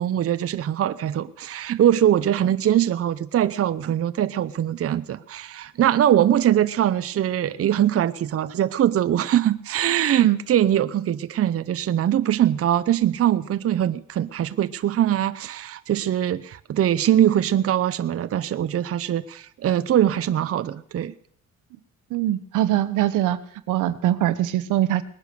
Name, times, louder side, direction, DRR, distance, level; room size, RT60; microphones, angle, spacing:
voice 1, 0.0-21.1, right 11 dB, 50° right, 13 dB, 0.7 m, -22 dB
voice 2, 22.1-23.4 23.7-25.0, right 13 dB, 85° right, 14 dB, 1.0 m, -22 dB
19.5 x 10.0 x 6.8 m, 0.64 s
cardioid pair, 90°, 30 cm